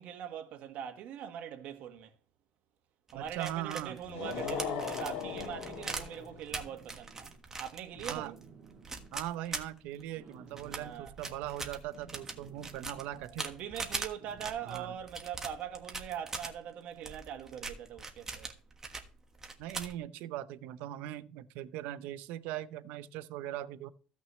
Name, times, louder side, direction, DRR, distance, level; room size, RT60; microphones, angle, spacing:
voice 1, 0.0-2.1 3.1-7.3 7.6-8.4 10.8-11.1 13.1-18.5, right 9 dB, 65° right, 1.4 m, -42 dB
sound 1, 3.1-10.2 10.6-16.5 17.0-19.1 19.4-20.0, right 3 dB, 20° right, 1.4 m, -41 dB
voice 2, 3.1-4.0 8.1-8.3 9.1-13.5 14.6-14.9 19.6-23.9, right 13 dB, 90° right, 0.6 m, -40 dB
sound 2, 4.0-6.4, left 7 dB, 90° left, 2.4 m, -38 dB
sound 3, 5.2-5.6 6.5-7.4 7.9-9.1 9.9-11.0 11.9-13.2 14.2-15.1 17.0-17.1, right 5 dB, 45° right, 2.4 m, -56 dB
15.5 x 6.1 x 3.1 m
cardioid pair, 130°, 3 cm